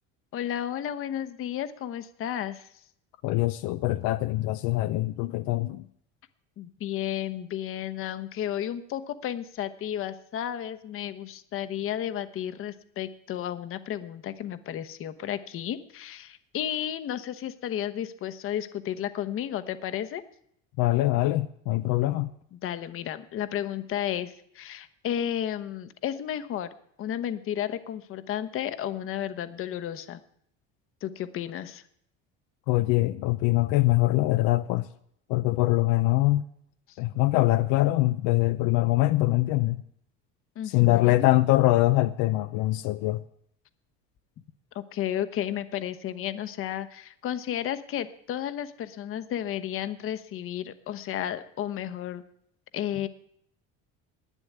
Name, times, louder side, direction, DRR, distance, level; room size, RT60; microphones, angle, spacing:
voice 1, 0.3-2.7 6.6-20.2 22.5-26.7 27.0-30.2 31.0-31.8 36.9-37.0 40.6-41.3 44.7-52.2 52.7-53.1, left 10 dB, 45° left, 1.1 m, -33 dB
voice 2, 3.2-5.8 20.8-22.3 32.7-34.9 35.3-36.4 37.0-39.8 40.6-43.2, left 18 dB, 75° left, 0.7 m, -23 dB
11.0 x 9.7 x 9.4 m
cardioid pair, 135°, 30 cm